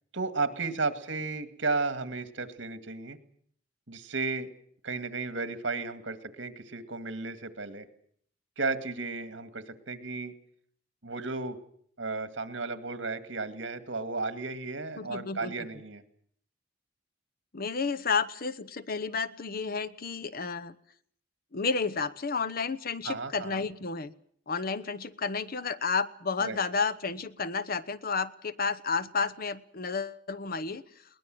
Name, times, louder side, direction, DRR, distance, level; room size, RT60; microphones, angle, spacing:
voice 1, 0.1-3.2 3.9-4.5 4.8-7.9 8.6-10.3 11.0-11.6 12.0-16.0 23.0-23.7 26.4-26.6, right 3 dB, 70° right, 9 dB, 2.1 m, -34 dB
voice 2, 15.0-15.5 17.5-20.7 21.5-24.1 24.5-30.8, left 4 dB, 50° left, 13 dB, 0.9 m, -31 dB
22.0 x 19.5 x 7.8 m, 0.63 s
head